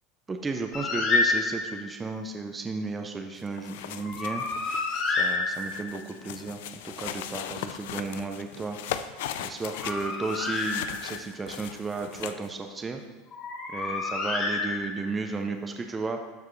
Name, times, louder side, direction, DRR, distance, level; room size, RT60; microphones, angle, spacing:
voice 1, 0.3-9.1 9.4-13.0 13.7-16.2, right 3 dB, 20° right, 5 dB, 0.6 m, -34 dB
Bird, 0.7-1.9 4.0-6.0 9.5-11.3 13.3-15.2, left 3 dB, 40° left, 2.0 m, -29 dB
sound 1, 3.4-12.5, left 10 dB, 80° left, 0.4 m, -39 dB
12.0 x 4.8 x 3.2 m, 1.2 s
supercardioid pair, 115°, 0 cm